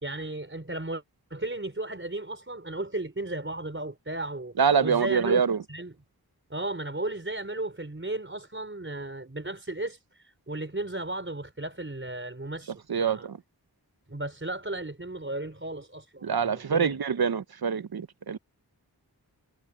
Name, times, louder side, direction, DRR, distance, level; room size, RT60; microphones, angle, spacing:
voice 1, 0.0-1.0 1.3-4.5 4.8-5.4 5.7-5.9 6.5-13.3 14.1-17.0, right 2 dB, 30° right, 4.9 m, -35 dB
voice 2, 4.6-5.6 12.9-13.4 16.2-18.4, right 6 dB, 70° right, 0.9 m, -25 dB
wide cardioid pair, 65°, 38 cm